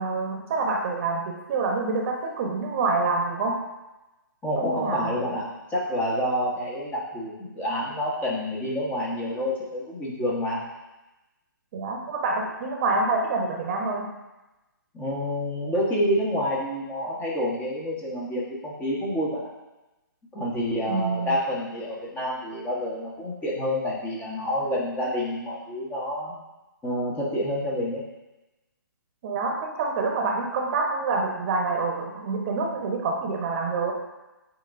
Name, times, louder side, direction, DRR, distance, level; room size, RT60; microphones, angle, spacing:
voice 1, 0.0-3.5 4.6-5.1 11.7-14.1 20.9-21.3 29.2-33.9, right 3 dB, 35° right, 0 dB, 1.1 m, -27 dB
voice 2, 4.4-10.6 14.9-19.4 20.3-26.3 26.8-28.0, equal, 15° left, -5 dB, 1.3 m, -28 dB
9.0 x 4.6 x 2.6 m, 1.0 s
hypercardioid pair, 145°, 11 cm